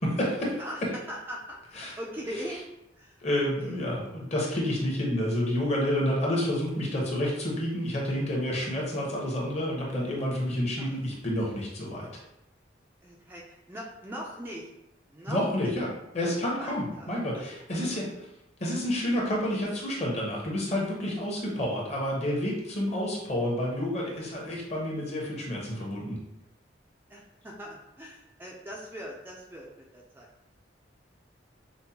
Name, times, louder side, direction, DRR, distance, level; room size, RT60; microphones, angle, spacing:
voice 1, 0.0-0.6 1.8-1.9 3.2-12.1 15.3-15.9 16.1-18.1 18.6-26.2, left 1 dB, 35° left, -3 dB, 0.9 m, -29 dB
voice 2, 0.6-2.6 2.9-3.7 10.8-11.0 13.0-14.7 15.1-15.8 16.2-17.1 17.3-17.5 17.8-18.0 22.9-23.1 27.1-30.3, equal, 10° right, -3 dB, 0.3 m, -41 dB
5.1 x 2.1 x 2.8 m, 0.88 s
head